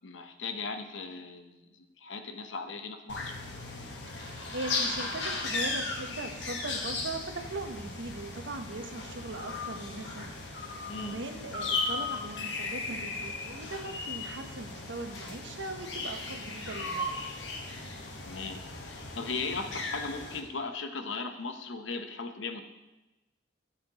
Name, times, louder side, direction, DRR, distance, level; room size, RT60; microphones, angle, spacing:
voice 1, 0.0-1.7 2.0-3.3 10.9-11.2 18.2-22.6, left 4 dB, 90° left, 7 dB, 0.8 m, -37 dB
sound 1, 3.1-20.4, left 3 dB, 70° left, 1.3 m, -36 dB
voice 2, 4.1-17.2, right 2 dB, 75° right, 6 dB, 0.9 m, -40 dB
13.0 x 7.3 x 2.9 m, 1.1 s
head